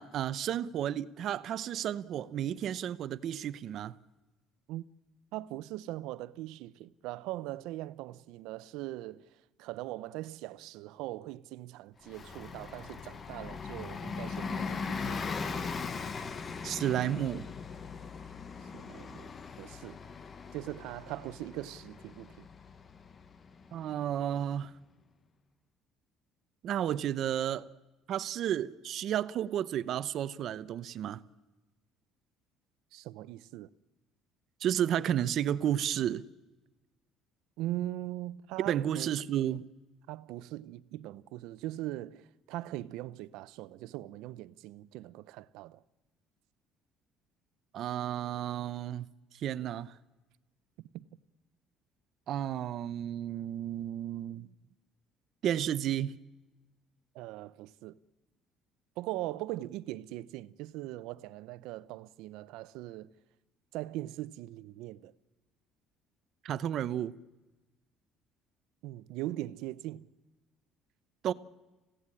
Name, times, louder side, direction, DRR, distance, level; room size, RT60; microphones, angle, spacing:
voice 1, 0.0-3.9 16.6-17.5 23.7-24.7 26.6-27.7 28.1-31.2 34.6-36.2 38.7-39.7 47.7-49.1 49.3-49.9 52.3-54.5 55.4-56.2 66.4-67.1 71.2-71.3, right 10 dB, 50° right, 0.8 m, -32 dB
voice 2, 5.3-15.6 18.6-19.3 19.6-20.0 20.5-22.5 32.9-33.7 37.6-39.2 40.1-45.8 50.8-51.0 57.1-58.0 59.0-63.1 63.7-65.1 68.8-70.1, right 16 dB, 80° right, 0.8 m, -41 dB
Bus, 12.0-24.3, left 5 dB, 25° left, 1.0 m, -40 dB
29.5 x 16.5 x 9.9 m
cardioid pair, 150°, 0 cm